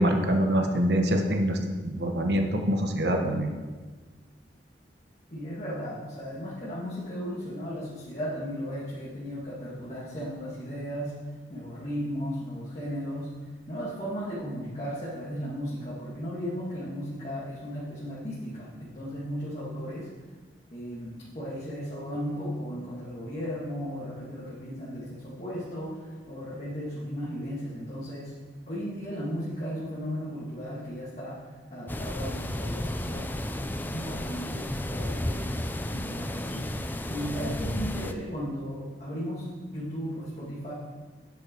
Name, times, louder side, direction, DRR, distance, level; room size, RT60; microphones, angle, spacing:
voice 1, 0.0-1.6 1.8-3.5, equal, 65° right, 3 dB, 1.2 m, -25 dB
voice 2, 5.3-11.1 11.5-13.3 13.7-20.1 20.7-28.3 28.7-35.5 35.9-36.7 37.1-40.7, equal, 35° left, -9 dB, 2.0 m, -36 dB
sound 1, 31.9-38.1, left 1 dB, 10° left, 0.4 m, -32 dB
10.0 x 7.7 x 4.5 m, 1.4 s
head